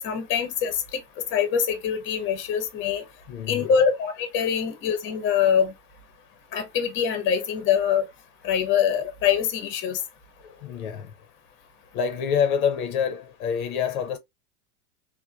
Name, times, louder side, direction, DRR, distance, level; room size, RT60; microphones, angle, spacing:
voice 1, 0.0-1.0 1.3-3.0 3.5-5.7 6.5-8.0 8.4-10.0, left 7 dB, 25° left, 0.7 m, -24 dB
voice 2, 3.3-3.8 10.4-11.3 11.9-14.2, left 7 dB, 65° left, 0.7 m, -27 dB
3.1 x 2.1 x 2.3 m
hypercardioid pair, 120°, 45 cm